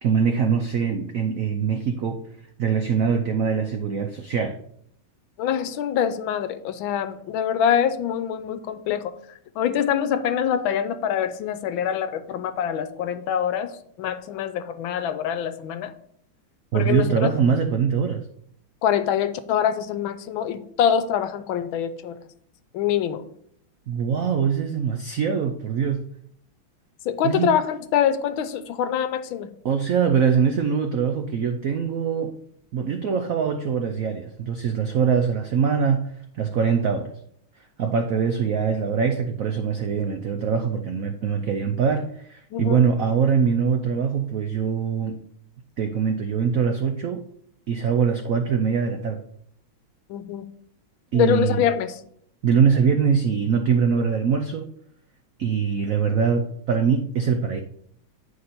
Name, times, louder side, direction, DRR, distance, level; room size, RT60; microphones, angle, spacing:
voice 1, 0.0-2.2 2.6-4.6 16.7-18.2 23.9-26.1 27.2-27.5 29.6-32.3 32.7-36.1 36.4-37.1 37.8-45.1 45.8-47.2 47.7-49.2 51.1-51.7 52.4-54.7 55.4-57.6, right 6 dB, 85° right, 6 dB, 0.7 m, -23 dB
voice 2, 5.4-9.1 9.6-13.7 14.0-15.9 16.7-17.3 18.8-22.2 22.7-23.2 27.1-29.5 42.5-42.8 50.1-50.5 51.1-51.9, left 9 dB, 80° left, 11 dB, 1.4 m, -24 dB
9.3 x 5.2 x 4.2 m, 0.66 s
omnidirectional pair, 2.3 m